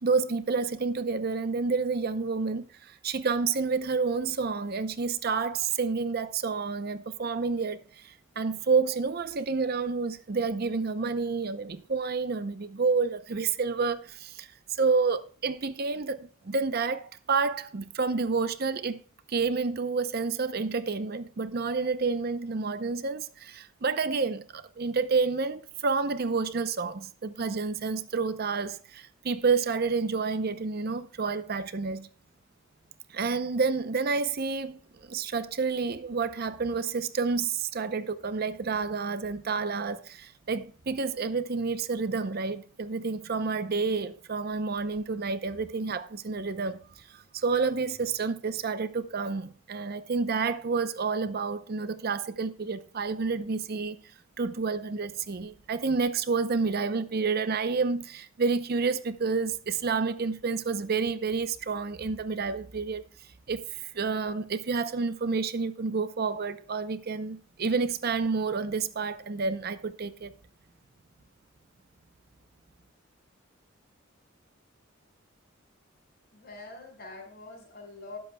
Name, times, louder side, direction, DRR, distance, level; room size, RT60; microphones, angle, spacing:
voice 1, 0.0-14.5 14.8-19.0 19.3-32.1 33.1-46.8 47.1-54.0 54.4-63.0 63.5-70.3, right 4 dB, 50° right, 0.6 m, -29 dB
voice 2, 76.3-78.2, left 3 dB, 50° left, 4.8 m, -44 dB
20.0 x 7.8 x 2.2 m
head